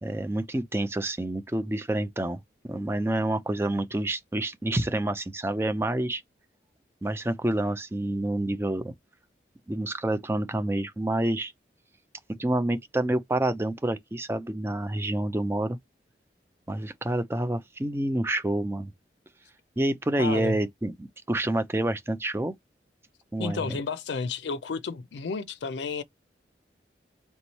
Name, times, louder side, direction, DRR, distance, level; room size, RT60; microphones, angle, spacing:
voice 1, 0.0-6.2 7.0-8.9 9.7-11.5 12.4-15.8 16.7-18.9 19.8-22.5 23.3-23.8, right 1 dB, 15° right, 0.4 m, -28 dB
voice 2, 20.2-20.6 23.4-26.0, left 4 dB, 80° left, 0.4 m, -32 dB
3.4 x 3.0 x 4.1 m
head